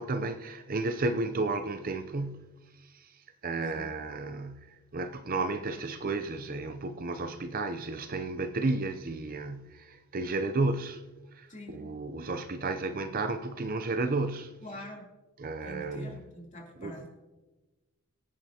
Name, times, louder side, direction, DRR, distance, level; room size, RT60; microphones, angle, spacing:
voice 1, 0.0-2.5 2.9-3.1 3.4-11.1 11.3-14.6 15.4-16.2 16.8-17.0, right 3 dB, 40° right, 0.6 m, -33 dB
voice 2, 11.5-11.9 14.6-15.1 15.6-17.1, left 1 dB, 35° left, 3.1 m, -45 dB
24.0 x 9.0 x 2.8 m
head